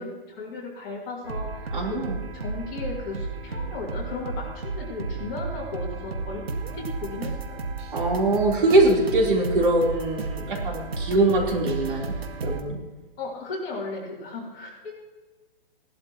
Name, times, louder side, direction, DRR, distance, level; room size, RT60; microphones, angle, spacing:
voice 1, 0.0-6.4 6.7-7.6 13.2-14.9, left 3 dB, 20° left, -7 dB, 3.3 m, -35 dB
sound 1, 1.2-12.6, right 3 dB, 75° right, 1.9 m, -33 dB
voice 2, 1.7-2.2 7.9-12.1 12.4-12.8, right 2 dB, 55° right, -2 dB, 4.0 m, -22 dB
17.5 x 12.5 x 3.1 m, 1.2 s
hypercardioid pair, 175°, 30 cm